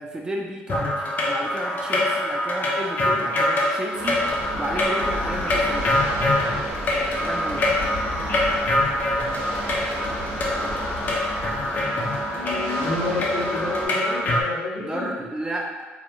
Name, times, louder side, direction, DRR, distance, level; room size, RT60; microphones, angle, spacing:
voice 1, 0.0-4.2 4.5-5.9 7.2-7.7 14.8-15.8, right 1 dB, 15° right, 0 dB, 0.4 m, -32 dB
sound 1, 0.7-14.4, left 1 dB, 40° left, 0.5 m, -25 dB
sound 2, 3.9-13.9, right 1 dB, 80° right, 0.8 m, -34 dB
sound 3, 4.3-11.8, left 1 dB, 60° right, 1.3 m, -36 dB
voice 2, 12.3-15.1, left 3 dB, 75° left, -4 dB, 0.7 m, -29 dB
2.8 x 2.2 x 2.6 m, 1.3 s
cardioid pair, 105°, 4 cm